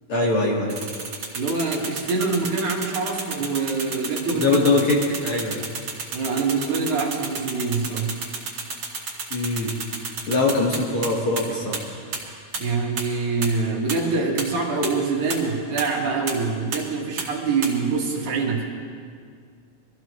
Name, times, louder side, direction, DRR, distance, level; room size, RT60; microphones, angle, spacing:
voice 1, 0.1-0.8 4.3-5.0 5.2-5.6 9.3-9.7 10.3-11.8, left 3 dB, 50° left, -3 dB, 2.2 m, -22 dB
sound 1, 0.7-11.1 11.4-11.5 11.7-11.8 12.1-12.2 12.5-12.6 13.0-13.1 13.4-13.5 13.9-14.0 14.4-14.5 14.8-14.9 15.3-15.4 15.8-15.9 16.3-16.4 16.7-16.8 17.2-17.3 17.6-17.7, right 4 dB, 50° right, 3.3 m, -30 dB
voice 2, 1.3-4.6 6.1-8.1 12.6-18.7, right 4 dB, 70° right, -2 dB, 3.2 m, -25 dB
23.5 x 15.0 x 3.1 m, 2.1 s
omnidirectional pair, 3.5 m